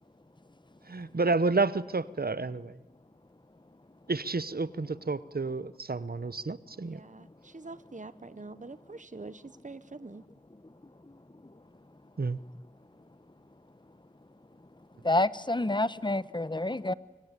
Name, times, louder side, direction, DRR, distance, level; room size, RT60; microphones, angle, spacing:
voice 1, 0.9-2.8 4.1-7.0 12.2-12.4, right 3 dB, 85° right, 16 dB, 0.8 m, -30 dB
voice 2, 6.8-10.2, right 3 dB, 55° right, 14 dB, 0.9 m, -45 dB
voice 3, 15.0-16.9, left 2 dB, 30° left, 17 dB, 0.9 m, -28 dB
25.0 x 24.0 x 9.7 m, 1.1 s
wide cardioid pair, 45°, 15 cm